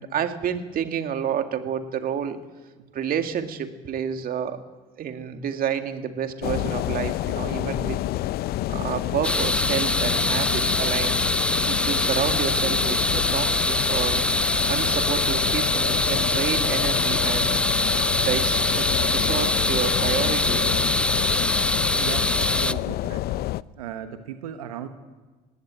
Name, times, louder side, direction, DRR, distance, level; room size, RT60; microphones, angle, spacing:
voice 1, 0.0-2.4 2.9-4.6 5.0-8.0 8.7-14.2 14.7-17.6 18.2-20.9, right 8 dB, 55° right, 7 dB, 2.3 m, -29 dB
sound 1, 6.4-23.6, left 15 dB, 60° left, 0.6 m, -28 dB
sound 2, 9.2-22.7, left 1 dB, 5° left, 0.8 m, -24 dB
voice 2, 21.9-23.2 23.8-24.9, right 9 dB, 85° right, 8 dB, 1.3 m, -36 dB
19.5 x 17.0 x 9.0 m, 1.3 s
hypercardioid pair, 60°, 18 cm